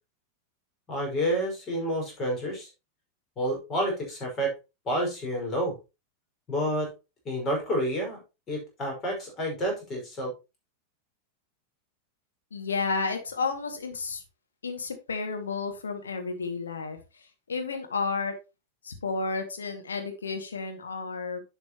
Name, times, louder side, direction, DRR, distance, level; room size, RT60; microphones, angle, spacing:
voice 1, 0.9-2.7 3.4-4.5 4.9-5.7 6.5-6.9 7.3-8.2 8.5-10.3, equal, 30° left, 0 dB, 5.2 m, -29 dB
voice 2, 12.5-14.2 14.6-18.4 18.8-21.4, left 4 dB, 70° left, 4 dB, 2.0 m, -32 dB
11.0 x 6.1 x 3.0 m, 0.27 s
figure-of-eight pair, 90°, 0 cm